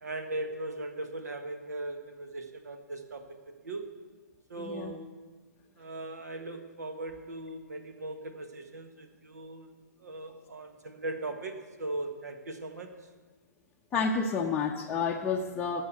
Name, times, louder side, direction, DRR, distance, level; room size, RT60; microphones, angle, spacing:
voice 1, 0.0-3.9 4.5-5.2 5.8-9.7 10.0-12.9, right 2 dB, 65° right, 7 dB, 1.4 m, -39 dB
voice 2, 4.6-4.9 13.9-15.8, left 5 dB, 15° left, -2 dB, 0.7 m, -30 dB
12.5 x 6.5 x 8.1 m, 1.3 s
figure-of-eight pair, 120°, 9 cm